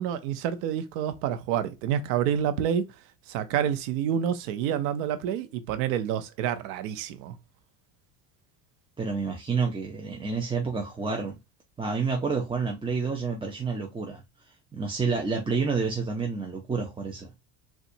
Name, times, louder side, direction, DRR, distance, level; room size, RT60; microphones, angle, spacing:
voice 1, 0.0-2.9 3.3-7.3, right 9 dB, 75° right, 0.8 m, -28 dB
voice 2, 9.0-11.4 11.8-14.2 14.7-17.3, right 4 dB, 10° right, 0.5 m, -29 dB
4.1 x 2.4 x 2.6 m
supercardioid pair, 95°, 48 cm